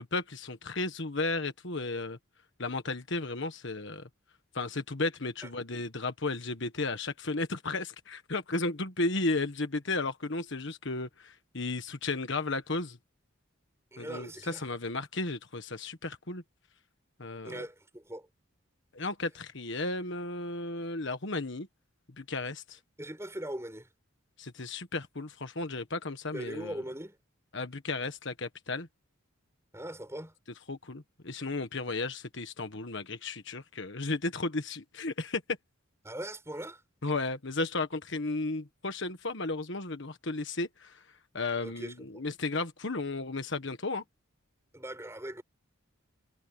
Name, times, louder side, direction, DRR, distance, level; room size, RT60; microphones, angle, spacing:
voice 1, 0.0-2.2 2.6-4.1 4.5-13.0 14.0-16.4 17.2-17.7 18.9-21.7 22.2-22.8 24.4-26.7 27.5-28.9 30.7-35.4 37.0-41.0 41.3-44.0, left 3 dB, 60° left, 1.5 m, -34 dB
voice 2, 13.9-14.7 17.4-18.3 23.0-23.9 26.3-27.2 29.7-30.3 36.0-36.8 41.6-42.2 44.7-45.4, right 1 dB, 15° right, 7.5 m, -40 dB
head